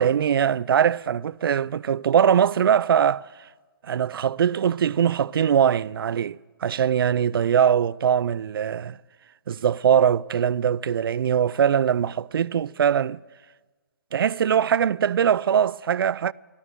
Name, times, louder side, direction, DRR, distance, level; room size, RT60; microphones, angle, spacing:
voice 1, 0.0-3.3 3.8-9.0 9.5-13.2 14.1-16.3, right 8 dB, 75° right, 0.4 m, -21 dB
13.5 x 12.5 x 7.9 m
hypercardioid pair, 165°, 12 cm